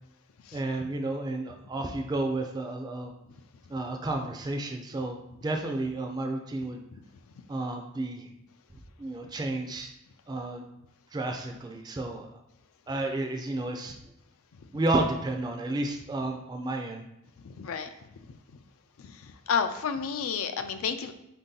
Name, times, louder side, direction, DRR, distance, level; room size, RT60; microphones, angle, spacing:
voice 1, 0.5-3.1 3.7-6.8 7.5-8.3 9.0-9.9 10.3-10.7 11.1-12.3 12.9-14.0 14.7-17.0, right 2 dB, 20° right, 3 dB, 0.3 m, -31 dB
voice 2, 17.4-17.9 18.3-18.4 19.0-21.1, left 6 dB, 80° left, 9 dB, 0.4 m, -31 dB
4.4 x 2.7 x 3.8 m, 0.86 s
head